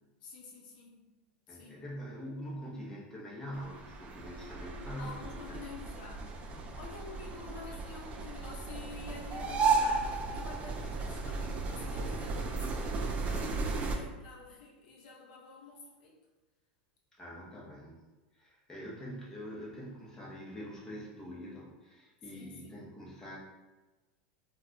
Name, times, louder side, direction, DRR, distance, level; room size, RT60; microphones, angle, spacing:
voice 1, 0.2-1.0 1.5-1.9 5.0-6.3 6.7-16.1 22.3-22.9, left 3 dB, 70° left, -2 dB, 0.8 m, -49 dB
voice 2, 1.5-5.6 6.5-6.8 17.1-18.0 18.3-23.4, equal, 10° left, -5 dB, 0.7 m, -44 dB
sound 1, 3.5-14.0, right 4 dB, 25° right, 0.4 m, -34 dB
2.2 x 2.2 x 3.7 m, 1.2 s
supercardioid pair, 130°, 5 cm